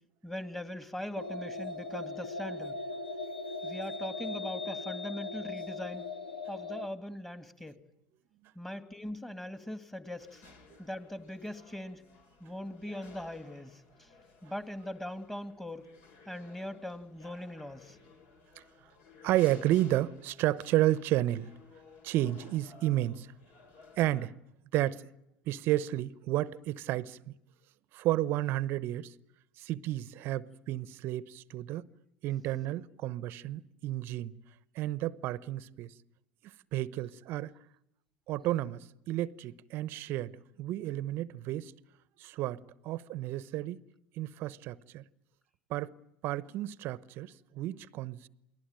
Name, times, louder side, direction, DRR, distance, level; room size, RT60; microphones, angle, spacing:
voice 1, 0.2-2.8 3.6-6.0 6.5-7.8 8.6-10.4 10.8-12.0 12.4-14.1 14.4-15.9 16.3-18.0, left 1 dB, 5° left, 2.3 m, -40 dB
sound 1, 1.2-6.9, left 3 dB, 85° left, 1.2 m, -39 dB
sound 2, 10.2-24.3, left 4 dB, 55° left, 3.9 m, -57 dB
voice 2, 19.2-21.5 22.0-23.3 24.0-24.3 24.7-25.0 25.5-27.2 27.9-29.1 29.6-31.9 32.2-34.3 34.7-35.9 36.4-37.6 38.3-40.3 40.6-41.7 42.2-43.8 44.1-45.0 45.7-45.9 46.2-48.3, right 14 dB, 55° right, 0.9 m, -32 dB
29.0 x 20.0 x 9.1 m
hypercardioid pair, 80°, 5 cm